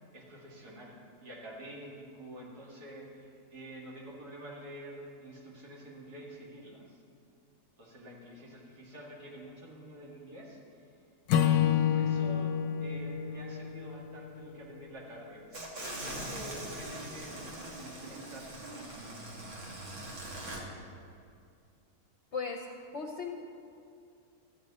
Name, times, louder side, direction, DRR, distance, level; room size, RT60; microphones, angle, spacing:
voice 1, 0.1-7.0 7.8-11.0 11.3-15.5 16.0-19.2, right 1 dB, 70° right, -4 dB, 2.6 m, -48 dB
Acoustic guitar / Strum, 11.3-14.6, left 9 dB, 75° left, 1.1 m, -29 dB
sound 1, 15.5-20.6, right 1 dB, 50° right, 1.7 m, -42 dB
voice 2, 22.3-23.3, left 4 dB, 55° left, 2 dB, 0.9 m, -37 dB
14.0 x 8.5 x 4.2 m, 2.4 s
omnidirectional pair, 1.8 m